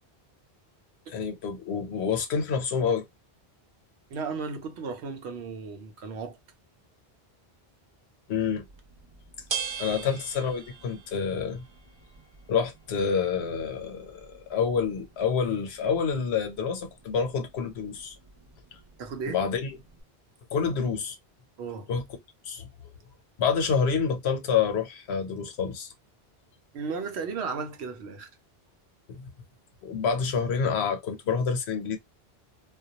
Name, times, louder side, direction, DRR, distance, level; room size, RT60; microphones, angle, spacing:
voice 1, 1.1-3.1 8.3-8.6 9.8-11.6 12.5-18.1 19.3-19.7 20.5-21.2 21.9-22.0 22.4-22.7 23.4-25.9 29.1-29.3 29.8-32.0, left 6 dB, 80° left, 1.0 m, -28 dB
voice 2, 4.1-6.4 9.9-10.2 19.0-19.4 21.6-21.9 26.7-28.3, right 5 dB, 90° right, 0.9 m, -35 dB
sound 1, 8.5-20.0, right 7 dB, 45° right, 0.3 m, -43 dB
2.2 x 2.2 x 2.7 m
omnidirectional pair, 1.1 m